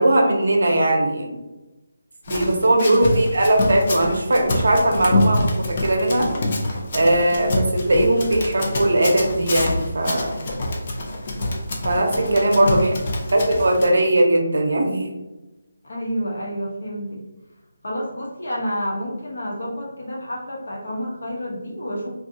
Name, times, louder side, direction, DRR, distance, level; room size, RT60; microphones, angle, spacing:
voice 1, 0.0-1.4 2.3-6.3 6.9-10.4 11.8-12.9 13.3-15.1, right 1 dB, 65° right, 2 dB, 0.6 m, -19 dB
Run, 2.3-13.9, left 1 dB, 35° left, 0.4 m, -26 dB
voice 2, 2.4-3.0 12.1-13.0 15.8-17.2 17.8-22.1, equal, 75° left, -3 dB, 0.9 m, -29 dB
2.7 x 2.3 x 2.7 m, 1.1 s
hypercardioid pair, 170°, 0 cm